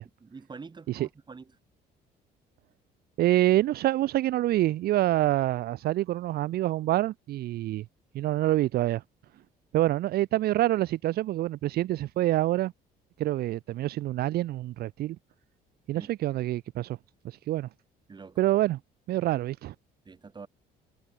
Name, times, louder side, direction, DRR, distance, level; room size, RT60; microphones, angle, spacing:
voice 1, 0.2-1.5 15.9-16.1 18.1-18.4 20.1-20.5, right 4 dB, 25° right, 5.6 m, -45 dB
voice 2, 3.2-7.8 8.1-9.0 9.7-12.7 13.2-15.2 15.9-17.0 17.2-17.7 18.4-18.8 19.1-19.7, right 15 dB, 65° right, 0.8 m, -26 dB
cardioid pair, 110°, 17 cm